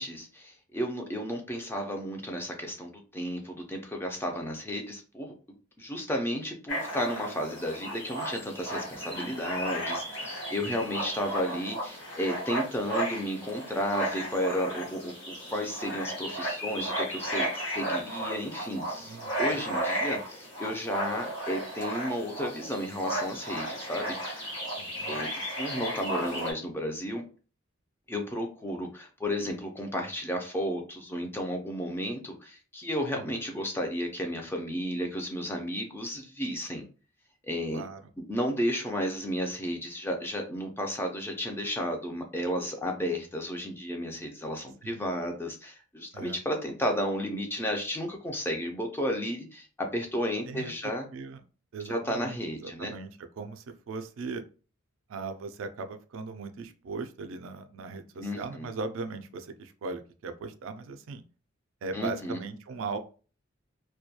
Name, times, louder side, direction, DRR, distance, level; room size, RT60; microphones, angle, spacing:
voice 1, 0.0-24.4 25.1-25.3 25.6-27.2 28.1-36.8 37.4-37.8 38.3-51.1 51.9-52.9 58.2-58.7 61.9-62.4, equal, 10° left, 2 dB, 0.3 m, -33 dB
sound 1, 6.7-26.5, right 1 dB, 65° left, 1.2 m, -34 dB
voice 2, 19.0-19.6 24.8-25.2 28.7-28.8 37.7-38.0 44.8-45.1 46.1-46.4 50.4-51.4 51.7-54.4 55.1-61.2 61.8-63.0, right 4 dB, 70° right, 8 dB, 0.3 m, -39 dB
2.2 x 2.2 x 2.7 m, 0.37 s
head